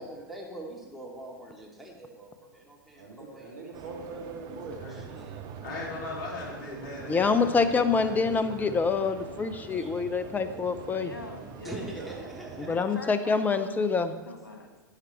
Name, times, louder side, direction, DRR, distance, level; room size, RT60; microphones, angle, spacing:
voice 1, 0.0-3.7 4.9-5.5 9.8-9.9 11.6-12.9, right 1 dB, ahead, -3 dB, 2.5 m, -43 dB
voice 2, 3.0-4.9 7.1-7.5 11.9-12.1, right 3 dB, 60° right, -1 dB, 2.2 m, -43 dB
sound 1, 3.7-12.8, right 7 dB, 35° right, 0.9 m, -44 dB
voice 3, 5.6-8.8, left 2 dB, 40° left, -3 dB, 4.1 m, -39 dB
voice 4, 7.1-11.1 12.6-14.1, left 4 dB, 15° left, 11 dB, 0.8 m, -26 dB
voice 5, 10.9-11.9 12.6-14.7, left 3 dB, 80° left, 2 dB, 2.3 m, -44 dB
12.0 x 9.3 x 4.4 m, 1.2 s
figure-of-eight pair, 95°, 11 cm